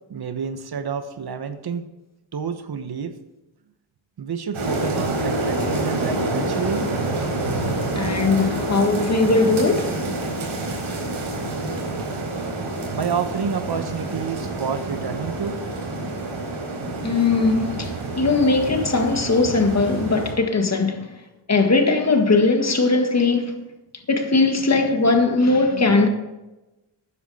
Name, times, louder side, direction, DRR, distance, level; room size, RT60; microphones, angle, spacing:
voice 1, 0.1-1.9 2.3-3.2 4.2-6.8 12.9-15.6, right 6 dB, 50° right, 1.1 m, -29 dB
sound 1, 4.5-20.3, right 2 dB, 80° right, 4.1 m, -27 dB
voice 2, 8.0-10.0 17.0-21.1 21.5-23.5 24.1-26.1, left 3 dB, 35° left, 1.8 m, -19 dB
13.0 x 9.8 x 4.2 m
cardioid pair, 75°, 47 cm